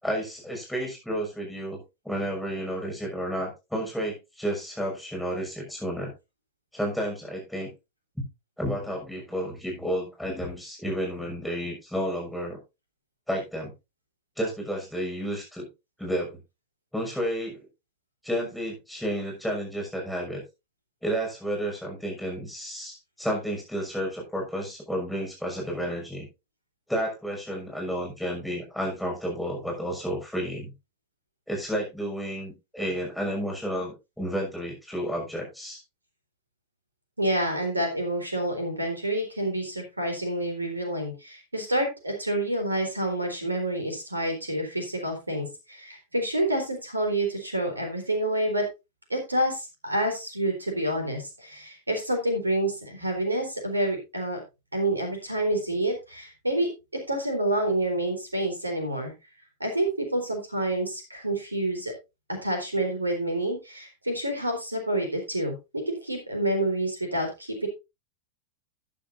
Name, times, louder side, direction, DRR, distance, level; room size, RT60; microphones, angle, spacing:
voice 1, 0.0-1.8 2.0-6.1 6.7-7.7 8.6-12.6 13.3-13.7 14.4-15.7 16.0-16.4 16.9-17.6 18.2-20.4 21.0-26.3 26.9-30.7 31.5-35.8, equal, ahead, 0 dB, 6.3 m, -31 dB
voice 2, 37.2-48.7 49.1-54.4 54.7-56.7 57.1-59.1 59.6-61.9 62.3-65.5 65.9-67.7, right 1 dB, 80° right, 4 dB, 3.9 m, -28 dB
13.0 x 10.0 x 2.7 m, 0.25 s
figure-of-eight pair, 90°, 0 cm